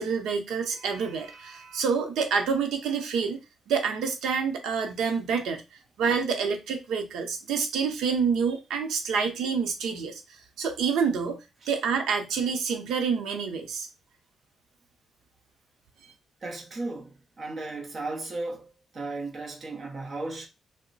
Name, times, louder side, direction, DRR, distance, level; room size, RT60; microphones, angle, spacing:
voice 1, 0.0-3.4 3.7-5.6 6.0-10.2 10.6-11.4 11.7-13.9, right 6 dB, 90° right, 0.7 m, -27 dB
voice 2, 16.4-20.5, right 2 dB, 35° right, 0.9 m, -35 dB
2.9 x 2.1 x 4.0 m
cardioid pair, 145°, 0 cm